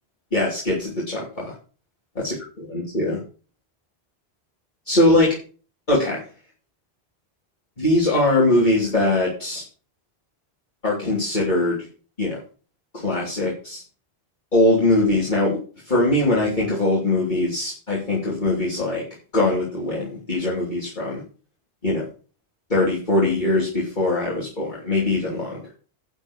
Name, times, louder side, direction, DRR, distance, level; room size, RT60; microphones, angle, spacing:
voice 1, 0.3-1.5 2.1-3.2 4.9-5.3 5.9-6.2 7.8-9.6 10.8-11.8 12.2-12.4 12.9-13.8 14.5-15.6 15.8-19.0 19.3-21.2 21.8-22.0 22.7-25.6, left 2 dB, 45° left, -6 dB, 3.2 m, -21 dB
11.5 x 4.6 x 7.2 m, 0.39 s
omnidirectional pair, 1.1 m